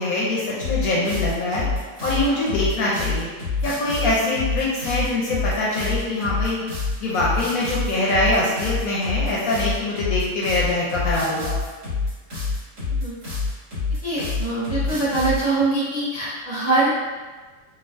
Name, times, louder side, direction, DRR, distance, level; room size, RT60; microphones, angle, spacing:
voice 1, 0.0-1.6 2.0-3.3 3.6-6.6 7.0-11.5, left 2 dB, 65° left, -5 dB, 0.9 m, -23 dB
sound 1, 0.6-15.5, left 4 dB, 75° right, 2.3 m, -27 dB
voice 2, 14.0-16.9, right 2 dB, 15° right, -9 dB, 0.5 m, -23 dB
4.3 x 2.4 x 2.4 m, 1.3 s
omnidirectional pair, 1.8 m